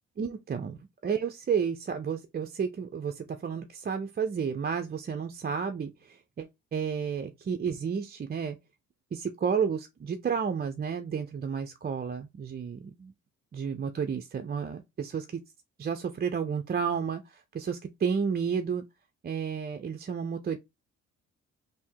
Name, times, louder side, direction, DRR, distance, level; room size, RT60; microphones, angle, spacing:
voice 1, 0.2-8.6 9.1-13.1 13.5-15.4 15.8-18.8 19.2-20.6, right 6 dB, 30° right, 0.6 m, -31 dB
3.5 x 2.7 x 4.5 m
cardioid pair, 90°, 30 cm